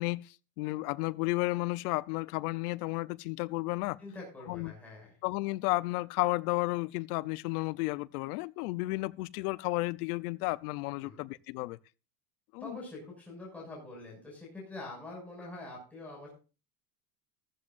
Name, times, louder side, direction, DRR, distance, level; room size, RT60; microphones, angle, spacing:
voice 1, 0.0-4.0 4.5-4.7 5.2-11.8 12.5-12.8, left 22 dB, 85° left, 0.8 m, -33 dB
voice 2, 4.0-5.2 11.0-11.2 12.6-16.3, left 2 dB, 5° left, 6.2 m, -45 dB
15.0 x 14.0 x 2.6 m
cardioid pair, 150°, 44 cm